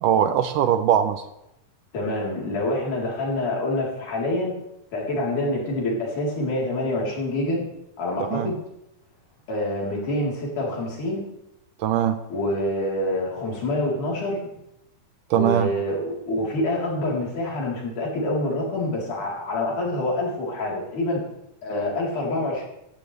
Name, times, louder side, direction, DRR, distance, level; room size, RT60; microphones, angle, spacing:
voice 1, 0.0-1.2 8.3-8.5 11.8-12.2 15.3-15.7, right 10 dB, 75° right, 10 dB, 2.1 m, -21 dB
voice 2, 1.9-4.6 4.9-7.6 8.0-8.6 9.5-11.3 12.3-14.4 15.3-21.2 21.6-22.6, left 1 dB, 60° left, -3 dB, 5.4 m, -26 dB
16.5 x 15.0 x 3.4 m, 0.84 s
omnidirectional pair, 4.0 m